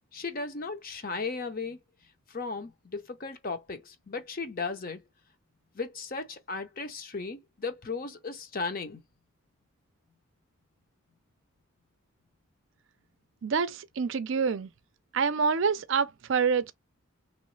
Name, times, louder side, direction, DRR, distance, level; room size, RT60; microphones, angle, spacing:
voice 1, 0.1-1.8 2.3-5.0 5.7-9.0, left 4 dB, 40° left, 0.7 m, -36 dB
voice 2, 13.4-14.7 15.1-16.7, right 5 dB, 60° right, 0.4 m, -27 dB
3.1 x 3.1 x 3.1 m
head